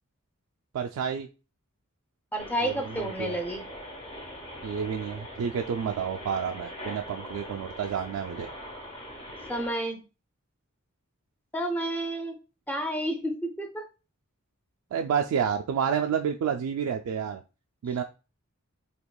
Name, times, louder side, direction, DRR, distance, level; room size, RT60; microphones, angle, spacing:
voice 1, 0.7-1.3 2.6-3.4 4.6-8.5 14.9-17.4 17.8-18.0, right 7 dB, 85° right, 4 dB, 0.3 m, -30 dB
voice 2, 2.3-3.6 9.5-10.0 11.5-12.3 12.7-13.8, right 1 dB, 10° left, 5 dB, 0.5 m, -30 dB
sound 1, 2.4-9.7, equal, 30° left, 1.0 m, -42 dB
4.5 x 2.8 x 2.3 m, 0.32 s
head